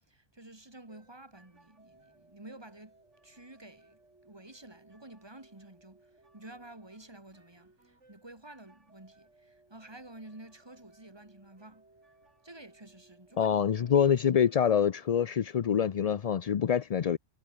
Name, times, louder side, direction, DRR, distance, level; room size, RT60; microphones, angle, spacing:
voice 1, 0.0-3.0 3.2-11.9 12.4-13.5, right 2 dB, 20° right, 3.0 m, -51 dB
sound 1, 0.9-15.1, right 2 dB, 65° right, 4.6 m, -63 dB
voice 2, 13.4-17.2, left 8 dB, 60° left, 0.4 m, -26 dB
omnidirectional pair, 1.3 m